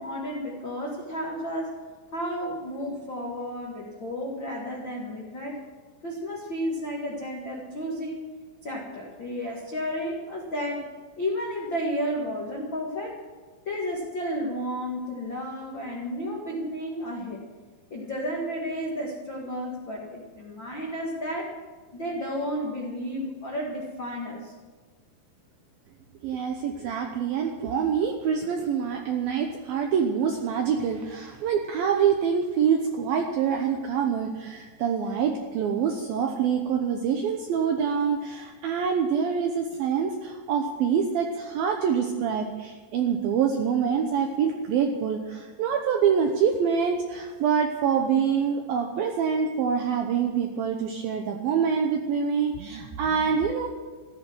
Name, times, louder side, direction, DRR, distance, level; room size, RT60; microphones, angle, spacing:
voice 1, 0.0-1.8 2.1-5.6 6.0-8.2 8.6-10.9 11.2-13.2 13.6-17.4 17.9-21.5 21.9-24.5, equal, 60° left, -2 dB, 1.2 m, -32 dB
voice 2, 26.2-53.7, right 7 dB, 75° right, 3 dB, 2.2 m, -25 dB
15.0 x 13.5 x 6.3 m, 1.4 s
omnidirectional pair, 5.4 m